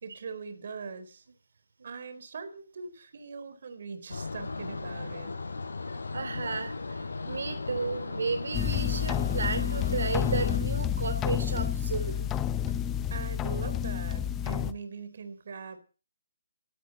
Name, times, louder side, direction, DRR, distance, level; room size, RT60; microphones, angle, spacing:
voice 1, 0.0-1.2 1.8-5.3 13.1-15.8, right 5 dB, 50° right, 11 dB, 4.2 m, -41 dB
sound 1, 4.1-10.6, left 3 dB, 90° left, 6.9 m, -36 dB
voice 2, 6.1-12.3, right 4 dB, 70° right, 10 dB, 3.2 m, -33 dB
sound 2, 8.5-14.7, left 9 dB, 10° left, 0.8 m, -29 dB
18.5 x 16.5 x 4.3 m, 0.36 s
hypercardioid pair, 170°, 0 cm